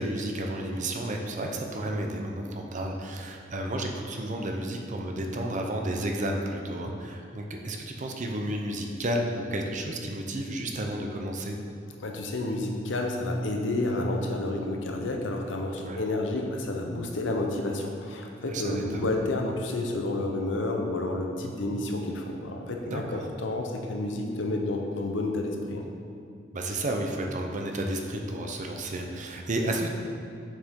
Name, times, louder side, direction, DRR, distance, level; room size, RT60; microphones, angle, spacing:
voice 1, 0.0-11.6 15.8-16.0 18.5-19.1 22.9-23.3 26.5-29.9, right 1 dB, 40° right, 2 dB, 0.6 m, -32 dB
voice 2, 12.0-23.0 23.4-25.8, left 2 dB, 70° left, 2 dB, 0.8 m, -30 dB
6.6 x 6.2 x 3.7 m, 2.4 s
head